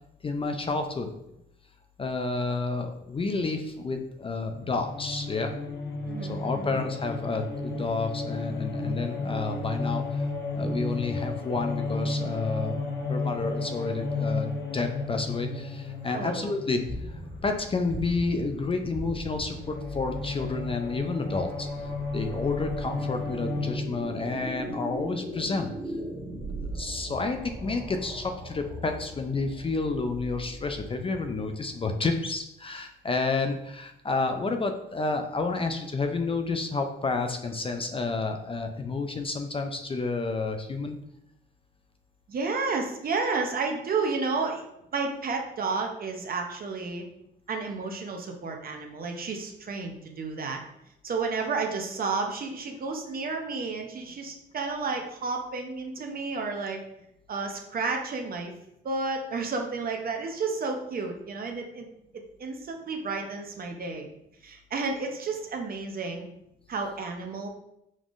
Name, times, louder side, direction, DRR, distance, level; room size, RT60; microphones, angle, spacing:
voice 1, 0.2-1.1 2.0-5.6 6.2-10.3 10.5-16.8 17.1-21.7 22.1-25.7 26.6-41.0, left 3 dB, 30° left, 6 dB, 0.4 m, -30 dB
sound 1, 4.4-23.8, left 3 dB, 55° left, 1.0 m, -33 dB
voice 2, 6.0-6.7 16.1-16.5 42.3-44.6 44.9-47.0 47.5-50.6 51.0-56.8 57.3-58.5 58.8-61.9 62.1-64.1 64.4-66.3 66.7-67.5, right 4 dB, 50° right, 3 dB, 0.7 m, -31 dB
sound 2, 19.6-32.3, right 1 dB, 20° right, 1.1 m, -40 dB
5.1 x 3.6 x 2.5 m, 0.81 s
cardioid pair, 90°, 20 cm